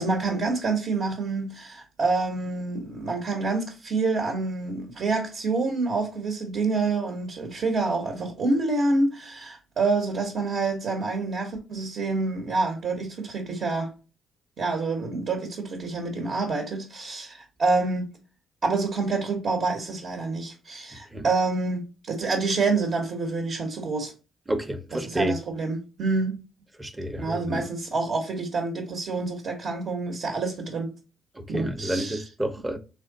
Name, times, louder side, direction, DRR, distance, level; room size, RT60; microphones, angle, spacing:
voice 1, 0.0-13.9 14.6-18.1 18.6-24.1 24.9-26.4 27.2-30.9 31.5-32.3, right 3 dB, 60° right, 1.0 m, -27 dB
voice 2, 24.5-25.3 26.8-27.7 31.5-32.8, right 1 dB, 15° right, 0.7 m, -29 dB
3.6 x 3.2 x 4.0 m
cardioid pair, 90°, 0 cm